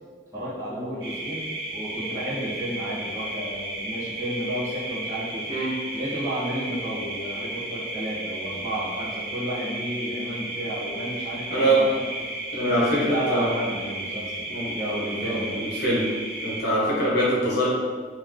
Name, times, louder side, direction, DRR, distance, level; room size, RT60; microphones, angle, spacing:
voice 1, 0.3-5.5 5.9-11.9 12.2-12.3 12.7-14.3 14.7-15.5, right 1 dB, 20° right, -11 dB, 1.4 m, -32 dB
sound 1, 1.0-16.6, right 1 dB, 75° right, 1.1 m, -34 dB
voice 2, 11.5-11.8 12.5-13.5 14.5-14.7 15.2-16.1 16.4-17.7, right 1 dB, 60° left, -6 dB, 1.2 m, -23 dB
3.3 x 3.1 x 3.6 m, 1.5 s
head